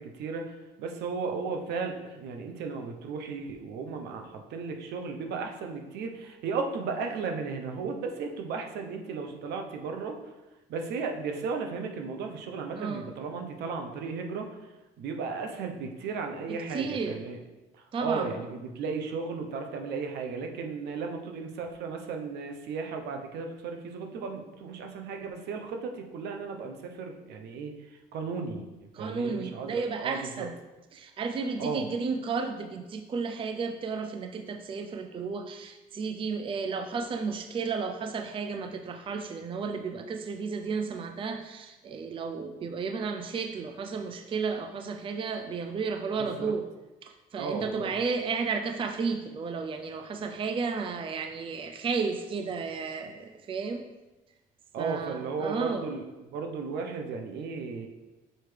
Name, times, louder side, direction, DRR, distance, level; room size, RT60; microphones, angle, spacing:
voice 1, 0.0-10.2 10.7-14.6 15.0-17.4 17.7-30.5 31.6-31.8 46.2-46.6 47.4-48.0 54.7-56.1 56.3-57.9, right 5 dB, 80° right, 4 dB, 0.8 m, -35 dB
voice 2, 12.8-13.1 16.7-17.2 17.9-18.3 28.9-30.6 30.9-46.7 47.0-53.8 54.8-55.9, right 5 dB, 30° right, 6 dB, 0.4 m, -33 dB
6.5 x 4.5 x 3.3 m, 1.1 s
cardioid pair, 110°, 17 cm